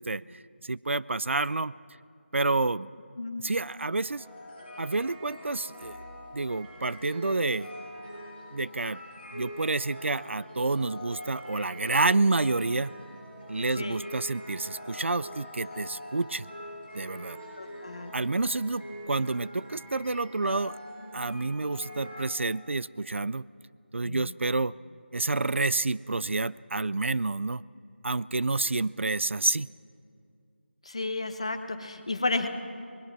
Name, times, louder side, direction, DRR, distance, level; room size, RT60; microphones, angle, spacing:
voice 1, 0.0-1.7 2.3-2.9 3.4-4.2 4.8-6.0 6.3-7.7 8.5-9.0 9.3-12.9 13.5-16.5 16.9-17.4 18.1-20.8 21.1-23.5 23.9-24.7 25.1-27.6 28.0-29.7, right 3 dB, 80° right, 19 dB, 0.4 m, -29 dB
sound 1, 4.0-22.3, equal, 10° right, 7.4 m, -44 dB
voice 2, 17.6-18.1 24.0-24.3 30.8-32.5, left 3 dB, 30° left, 8 dB, 1.0 m, -32 dB
25.0 x 20.0 x 6.0 m, 2.4 s
figure-of-eight pair, 175°, 7 cm